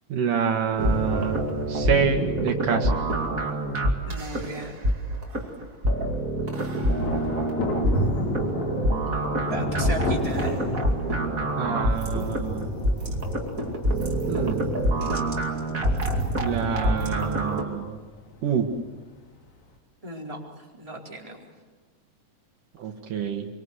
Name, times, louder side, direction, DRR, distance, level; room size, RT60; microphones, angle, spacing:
voice 1, 0.1-1.4 1.7-3.0 11.6-12.7 14.3-14.7 16.4-18.0 18.4-18.7 22.8-23.5, right 6 dB, 75° right, 4 dB, 3.2 m, -27 dB
sound 1, 0.8-17.6, right 1 dB, 25° right, 2.6 m, -26 dB
voice 2, 4.0-4.8 9.5-10.6 20.0-20.4 20.7-21.4, right 2 dB, 10° right, -2 dB, 4.3 m, -35 dB
Thunder, 7.0-19.0 19.2-19.3, left 2 dB, 60° left, 4.0 m, -33 dB
26.5 x 24.5 x 8.2 m, 1.3 s
omnidirectional pair, 3.7 m